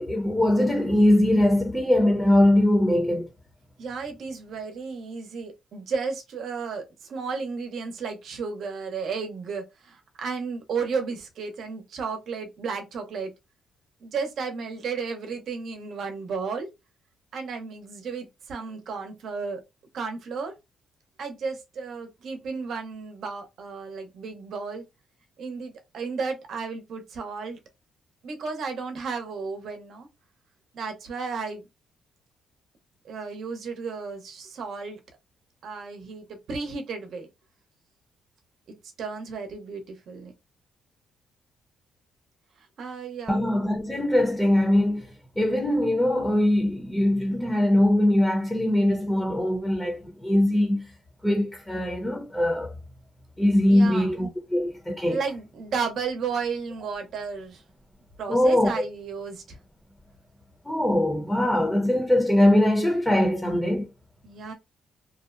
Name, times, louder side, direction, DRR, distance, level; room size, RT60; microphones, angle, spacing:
voice 1, 0.0-3.3 43.3-45.1 45.4-50.9 51.2-52.7 53.4-55.2 58.3-58.7 60.6-63.9, left 1 dB, 10° left, 0.7 m, -22 dB
voice 2, 3.8-13.3 14.0-16.7 17.3-19.6 19.9-20.5 21.2-24.8 25.4-27.6 28.2-30.1 30.7-31.6 33.0-35.0 35.6-37.3 39.0-40.3 42.6-43.4 53.7-54.2 55.0-57.6 58.2-59.6 64.2-64.5, right 5 dB, 65° right, 0.7 m, -33 dB
2.7 x 2.0 x 2.4 m
cardioid pair, 90°, 0 cm